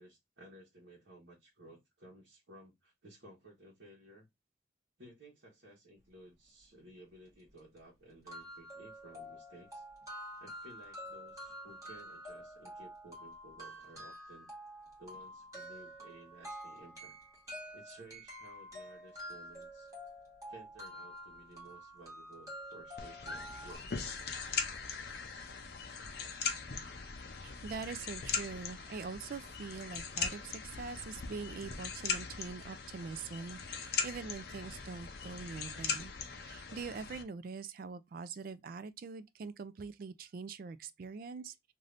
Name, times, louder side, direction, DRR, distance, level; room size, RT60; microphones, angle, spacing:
voice 1, 0.0-4.3 5.0-9.8 10.4-14.5 15.0-17.2 17.7-19.9 20.5-24.5, right 1 dB, 75° right, 1.1 m, -56 dB
sound 1, 7.3-7.4 7.8-7.9 8.3-23.7, equal, 20° right, 1.5 m, -48 dB
sound 2, 23.0-37.2, left 6 dB, 55° left, 0.6 m, -40 dB
voice 2, 27.4-41.7, right 4 dB, 50° right, 0.3 m, -44 dB
3.3 x 2.6 x 2.5 m
head